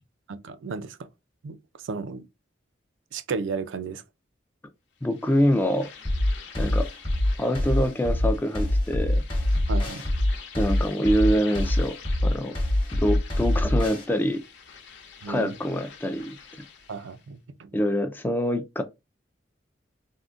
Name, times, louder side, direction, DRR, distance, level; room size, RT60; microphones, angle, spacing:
voice 1, 0.3-1.0 1.4-1.6 1.8-2.3 3.1-4.0 9.7-10.0 15.2-15.5 16.9-17.7, right 4 dB, 90° right, 0.4 m, -33 dB
sound 1, 5.0-17.3, left 6 dB, 70° left, 0.8 m, -46 dB
voice 2, 5.0-5.9 6.6-6.9 7.4-9.2 10.6-12.0 12.2-12.6 12.9-14.4 15.3-16.4 17.7-18.8, equal, 10° left, 0.3 m, -25 dB
sound 2, 6.0-14.0, left 1 dB, 30° left, 1.0 m, -24 dB
3.6 x 2.1 x 2.4 m
head